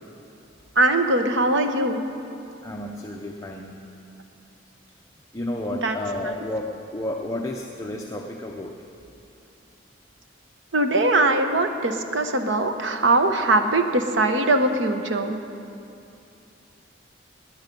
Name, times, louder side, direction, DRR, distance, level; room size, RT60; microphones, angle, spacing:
voice 1, 0.8-2.0 5.7-6.0 6.2-6.3 10.7-15.4, right 2 dB, 70° right, 7 dB, 1.0 m, -21 dB
voice 2, 2.6-3.8 5.3-8.8, left 1 dB, 15° left, 1 dB, 0.7 m, -31 dB
20.0 x 9.8 x 5.3 m, 2.6 s
head